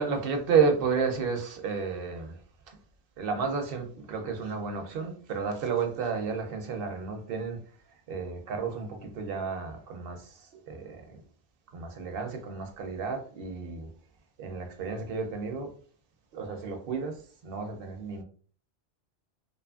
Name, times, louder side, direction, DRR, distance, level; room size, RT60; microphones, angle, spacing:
voice 1, 0.0-2.4 2.7-2.8 3.2-7.6 7.9-11.2 11.7-13.9 14.4-15.7 16.3-18.2, right 5 dB, 60° right, 4 dB, 0.7 m, -31 dB
2.7 x 2.4 x 2.3 m, 0.44 s
omnidirectional pair, 1.2 m